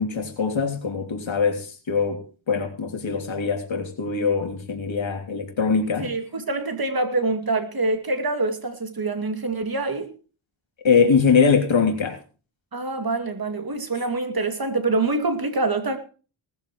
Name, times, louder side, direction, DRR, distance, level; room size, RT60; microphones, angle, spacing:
voice 1, 0.0-2.2 2.5-6.1 10.8-12.2, left 5 dB, 65° left, 3.2 m, -22 dB
voice 2, 6.0-10.1 12.7-16.0, right 3 dB, 45° right, 2.6 m, -25 dB
18.5 x 14.0 x 3.1 m
wide cardioid pair, 85°, 49 cm